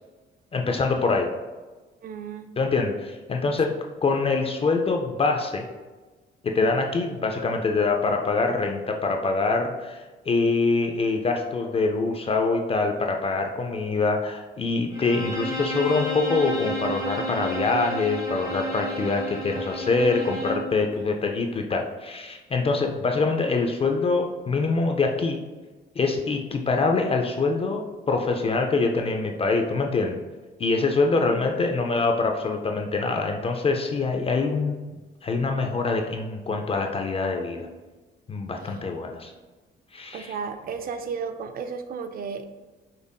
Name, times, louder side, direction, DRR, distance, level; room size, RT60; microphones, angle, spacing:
voice 1, 0.5-1.3 2.6-3.7 4.0-5.7 6.4-25.4 26.0-30.2 30.6-34.8 35.2-37.7 38.3-39.3 39.9-40.3, left 3 dB, 30° left, 3 dB, 0.3 m, -24 dB
voice 2, 2.0-2.5 31.2-31.5 40.1-42.4, right 6 dB, 50° right, 9 dB, 0.4 m, -34 dB
Bowed string instrument, 14.9-20.7, equal, 15° right, 1.0 m, -31 dB
5.2 x 2.5 x 2.2 m, 1.3 s
cardioid pair, 90°, 20 cm